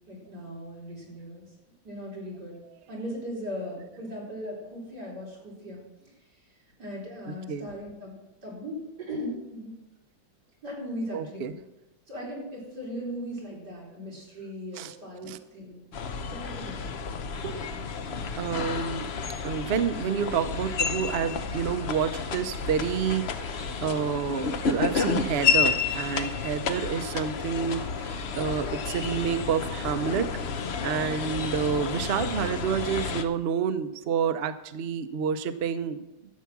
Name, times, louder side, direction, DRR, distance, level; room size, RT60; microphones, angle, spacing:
voice 1, 0.1-1.5 1.8-2.6 2.9-6.1 6.8-9.7 10.6-11.6 12.1-15.8 16.2-17.0 17.4-17.8, equal, 55° right, -4 dB, 4.8 m, -38 dB
voice 2, 11.1-11.5 14.7-15.0 15.2-15.4 18.3-19.1 19.4-30.3 30.8-36.0, right 7 dB, 85° right, 11 dB, 0.5 m, -29 dB
sound 1, 15.9-33.2, left 5 dB, 60° left, 0.6 m, -31 dB
13.0 x 8.3 x 6.0 m, 0.97 s
omnidirectional pair, 2.0 m